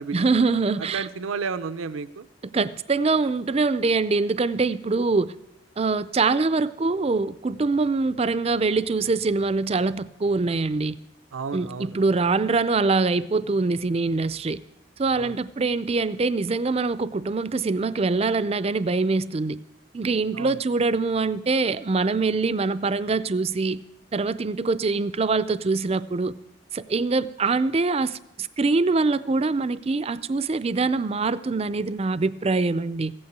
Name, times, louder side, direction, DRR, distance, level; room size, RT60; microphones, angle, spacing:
voice 1, 0.1-1.1 2.4-5.3 5.8-11.0 11.5-14.6 15.0-19.6 19.9-23.8 24.1-26.3 26.7-33.1, right 3 dB, 30° right, 0.4 m, -24 dB
voice 2, 0.9-2.3 11.3-12.0 15.1-15.4 20.3-20.5, right 5 dB, 80° right, 0.6 m, -32 dB
15.5 x 8.7 x 8.1 m
head